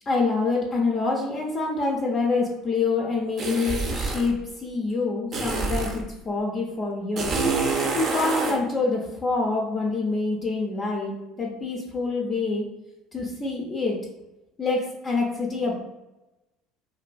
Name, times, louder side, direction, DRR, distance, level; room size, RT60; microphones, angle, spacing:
voice 1, 0.1-7.4 7.9-12.7 13.1-14.0 14.6-15.7, left 3 dB, 35° left, -1 dB, 0.4 m, -26 dB
sound 1, 3.4-4.3 5.3-6.0 7.2-8.6, right 3 dB, 45° right, 0.5 m, -26 dB
2.6 x 2.4 x 2.3 m, 1.0 s
hypercardioid pair, 70°, 0 cm